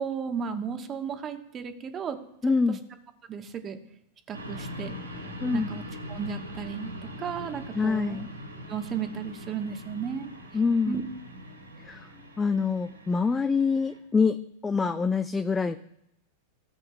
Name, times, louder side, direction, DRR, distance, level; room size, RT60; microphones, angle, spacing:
voice 1, 0.0-2.2 2.7-2.8 3.3-3.8 4.3-4.9 5.5-5.8 6.1-6.9 7.2-8.2 8.7-10.3 10.9-11.0, right 7 dB, 25° right, 7 dB, 1.2 m, -34 dB
voice 2, 2.4-2.8 5.4-5.7 7.8-8.3 10.5-11.0 11.9-12.0 12.4-14.4 14.6-15.8, left 5 dB, 15° left, 10 dB, 0.4 m, -25 dB
sound 1, 4.3-14.0, left 1 dB, 75° right, 2.7 m, -41 dB
17.0 x 7.8 x 2.3 m, 0.79 s
figure-of-eight pair, 90°, 0 cm